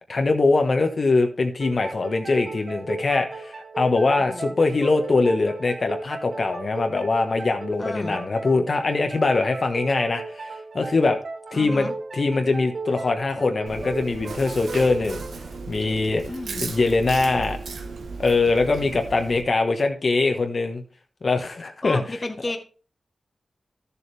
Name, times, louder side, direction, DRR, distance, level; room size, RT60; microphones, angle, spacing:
voice 1, 0.1-11.2 11.5-11.9 12.1-15.2 15.7-16.2 16.6-17.6 18.2-20.8 21.2-22.2, left 3 dB, 55° left, 5 dB, 1.2 m, -22 dB
sound 1, 1.6-16.9, right 3 dB, 55° right, 1.0 m, -36 dB
voice 2, 4.2-4.5 7.8-8.2 11.5-11.9 16.3-16.7 21.8-22.6, left 2 dB, 35° left, 6 dB, 1.1 m, -32 dB
Chewing mastication, 13.7-19.4, right 4 dB, 85° right, 1.1 m, -36 dB
12.5 x 7.0 x 3.4 m, 0.37 s
cardioid pair, 70°, 0 cm